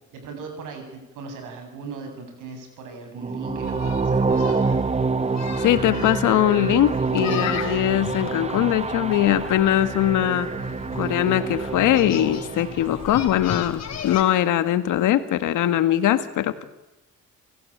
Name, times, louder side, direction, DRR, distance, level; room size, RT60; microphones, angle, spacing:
voice 1, 0.1-4.6, right 4 dB, 90° right, 5 dB, 7.6 m, -37 dB
sound 1, 3.2-13.3, right 4 dB, 20° right, 0.9 m, -27 dB
sound 2, 3.6-14.2, left 7 dB, 60° left, 3.4 m, -36 dB
voice 2, 5.6-10.5 11.0-16.6, left 12 dB, 85° left, 11 dB, 1.8 m, -21 dB
29.5 x 16.0 x 8.8 m, 1.0 s
cardioid pair, 90°, 30 cm